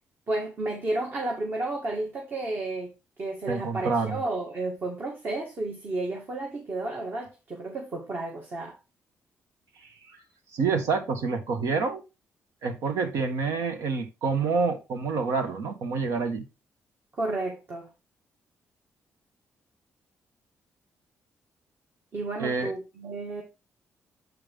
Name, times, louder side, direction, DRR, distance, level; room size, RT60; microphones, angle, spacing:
voice 1, 0.3-2.9 3.2-8.8 17.1-17.9 22.1-23.4, right 2 dB, 45° right, 1.9 m, -32 dB
voice 2, 3.5-4.2 9.8-9.9 10.5-12.0 12.6-16.4 22.4-22.7, right 4 dB, 90° right, 1.4 m, -27 dB
8.0 x 5.4 x 3.6 m
cardioid pair, 95°, 5 cm